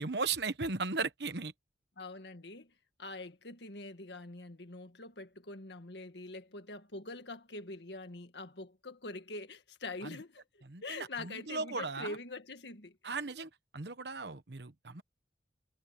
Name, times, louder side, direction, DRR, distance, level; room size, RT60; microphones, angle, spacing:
voice 1, 0.0-1.5 10.0-10.2 10.7-12.2 13.0-15.0, right 4 dB, 65° right, 1.2 m, -37 dB
voice 2, 2.0-2.7 3.0-13.3, left 2 dB, 65° left, 1.9 m, -45 dB
head